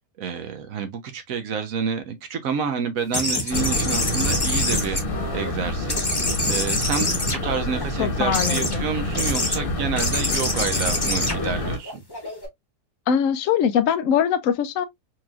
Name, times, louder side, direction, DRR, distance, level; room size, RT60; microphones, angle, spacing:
voice 1, 0.2-5.0 5.3-6.1 6.5-12.0, right 6 dB, 60° right, 1.1 m, -29 dB
sound 1, 3.1-5.5 5.9-7.8 8.3-8.8 9.1-9.6 10.0-12.5, left 2 dB, 15° left, 1.0 m, -26 dB
sound 2, 3.5-11.8, left 1 dB, 35° left, 1.2 m, -28 dB
voice 2, 8.0-8.8 13.1-14.8, left 8 dB, 65° left, 0.9 m, -22 dB
4.6 x 3.0 x 2.3 m
omnidirectional pair, 1.8 m